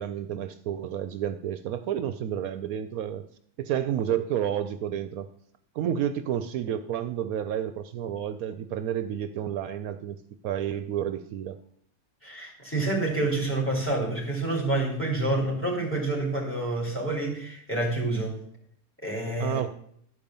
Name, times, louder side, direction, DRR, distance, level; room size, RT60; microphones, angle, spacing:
voice 1, 0.0-3.2 3.6-5.3 5.7-10.2 10.4-11.6 19.4-19.7, right 10 dB, 75° right, 10 dB, 1.0 m, -30 dB
voice 2, 12.2-18.4 19.0-19.6, right 2 dB, 10° left, -2 dB, 3.0 m, -28 dB
11.5 x 5.3 x 7.0 m, 0.66 s
omnidirectional pair, 1.6 m